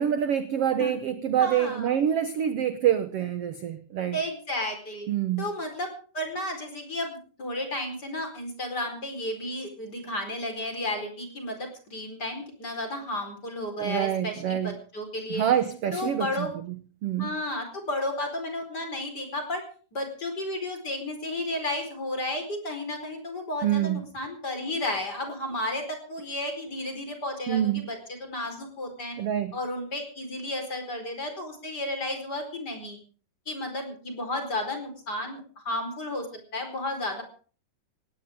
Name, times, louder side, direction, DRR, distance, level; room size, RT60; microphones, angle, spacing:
voice 1, 0.0-4.2 5.1-5.5 13.8-14.8 15.3-17.3 23.6-24.1 27.5-27.8 29.2-29.6, right 10 dB, 65° right, 10 dB, 1.6 m, -26 dB
voice 2, 1.4-1.9 4.1-5.1 5.4-15.4 15.9-16.5 17.2-19.6 19.9-29.2 29.5-33.0 33.5-36.3 36.5-37.2, left 1 dB, 25° left, 5 dB, 5.0 m, -33 dB
18.5 x 18.0 x 3.7 m, 0.40 s
omnidirectional pair, 4.0 m